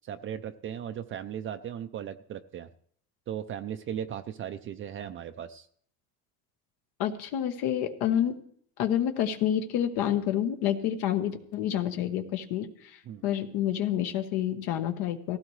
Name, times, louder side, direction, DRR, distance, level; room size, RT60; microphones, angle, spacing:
voice 1, 0.0-2.7 3.3-5.7 13.1-13.2, right 9 dB, 35° right, 8 dB, 0.5 m, -37 dB
voice 2, 7.0-8.4 8.8-15.4, left 10 dB, 75° left, 5 dB, 1.3 m, -28 dB
18.5 x 16.0 x 3.2 m, 0.62 s
cardioid pair, 150°, 38 cm